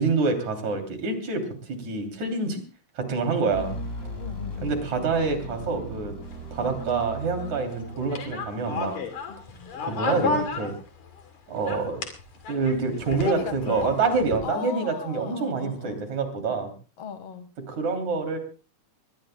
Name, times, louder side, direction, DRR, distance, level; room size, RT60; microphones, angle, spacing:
voice 1, 0.0-2.6 3.0-3.8 4.6-6.1 6.5-8.9 9.8-10.7 11.5-12.0 12.5-16.7 17.7-18.4, right 4 dB, 75° right, 5 dB, 4.4 m, -26 dB
voice 2, 3.4-3.9 4.2-4.8 6.6-6.8 9.3-9.7 13.2-13.9 14.4-16.1 17.0-17.5, left 7 dB, 60° left, 10 dB, 2.4 m, -37 dB
sound 1, 3.5-8.8, right 1 dB, 25° left, 4.6 m, -37 dB
sound 2, 6.2-11.3 11.6-14.4, left 4 dB, 80° left, 3.9 m, -33 dB
23.0 x 20.5 x 2.2 m, 0.35 s
omnidirectional pair, 3.3 m